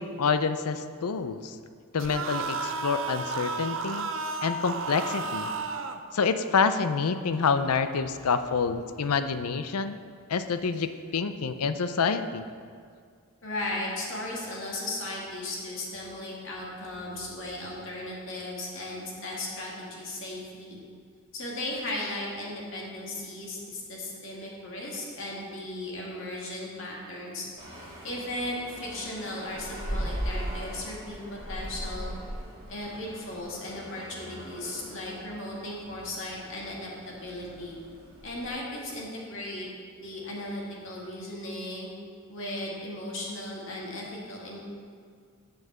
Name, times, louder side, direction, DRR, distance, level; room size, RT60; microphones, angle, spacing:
voice 1, 0.0-1.6 1.9-4.1 4.4-5.5 6.1-10.0 10.3-12.4, left 5 dB, 90° left, 10 dB, 0.5 m, -27 dB
sound 1, 2.0-6.0, right 4 dB, 60° right, 0.5 m, -32 dB
voice 2, 13.4-20.8 21.3-27.5 28.0-32.1 32.7-37.8 38.2-39.7 40.0-41.9 42.3-44.6, left 1 dB, 55° left, -4 dB, 2.0 m, -36 dB
sound 2, 27.6-38.5, equal, 25° right, 1.7 m, -39 dB
7.1 x 6.4 x 7.4 m, 2.1 s
head